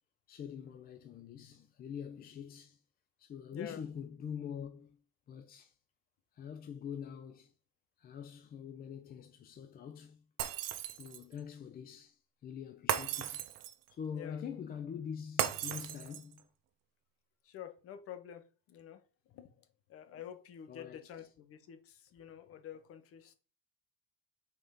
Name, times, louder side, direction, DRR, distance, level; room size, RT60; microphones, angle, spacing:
voice 1, 0.3-2.8 3.2-5.0 5.3-5.7 6.3-7.5 8.0-10.2 11.0-13.5 13.9-16.4 20.7-21.0, left 7 dB, 30° left, 0.6 m, -44 dB
voice 2, 3.5-3.8 14.1-14.4 17.4-23.3, left 9 dB, 45° left, 1.3 m, -49 dB
Shatter, 10.4-11.3 12.9-13.9 15.4-16.4, right 11 dB, 55° right, 0.9 m, -36 dB
5.7 x 4.2 x 5.1 m
supercardioid pair, 120°, 31 cm